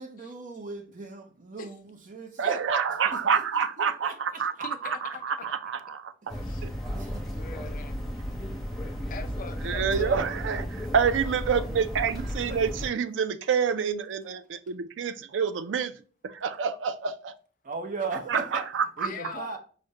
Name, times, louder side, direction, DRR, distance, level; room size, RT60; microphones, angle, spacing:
voice 1, 0.0-2.5 3.1-3.2 3.5-5.7 6.2-6.6 6.9-7.4 12.2-12.6 17.6-18.7 19.0-19.6, right 4 dB, 45° right, 0.7 m, -39 dB
voice 2, 2.4-4.5 4.8-6.3 6.6-6.7 9.6-15.9 16.2-17.3 18.3-18.4 18.7-18.8, right 6 dB, 80° right, 0.4 m, -27 dB
voice 3, 4.6-5.0 6.4-6.6 7.3-8.1 9.1-10.3 19.0-19.6, left 5 dB, 45° left, 0.5 m, -41 dB
sound 1, 6.3-12.9, equal, ahead, 0.7 m, -34 dB
4.9 x 2.1 x 2.7 m
head